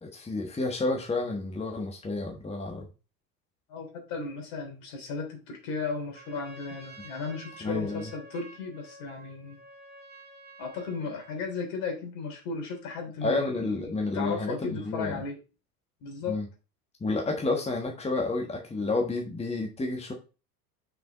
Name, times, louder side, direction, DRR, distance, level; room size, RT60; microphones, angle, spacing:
voice 1, 0.0-2.9 7.6-8.1 13.2-15.2 16.3-16.5 17.0-20.1, left 2 dB, 15° left, 1 dB, 1.4 m, -30 dB
voice 2, 3.7-9.6 10.6-15.4 16.0-16.4, left 4 dB, 55° left, 2 dB, 3.3 m, -35 dB
Trumpet, 6.0-11.5, right 1 dB, 20° right, 2.0 m, -50 dB
6.1 x 5.1 x 3.9 m, 0.32 s
hypercardioid pair, 85°, 49 cm